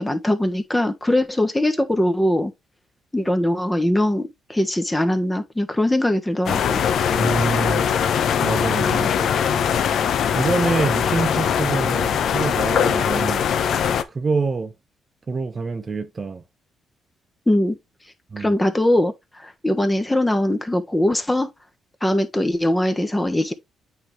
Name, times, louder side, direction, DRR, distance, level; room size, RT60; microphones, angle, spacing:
voice 1, 0.0-2.5 3.1-6.8 17.5-17.8 18.4-21.5 22.0-23.5, left 1 dB, 10° left, 1.2 m, -21 dB
sound 1, 6.5-14.0, left 8 dB, 65° left, 0.8 m, -21 dB
voice 2, 7.1-7.8 8.4-9.3 10.3-13.4 14.1-14.7 15.3-16.4 18.3-18.5, right 4 dB, 35° right, 0.9 m, -25 dB
8.6 x 3.6 x 3.3 m
cardioid pair, 90°, 0 cm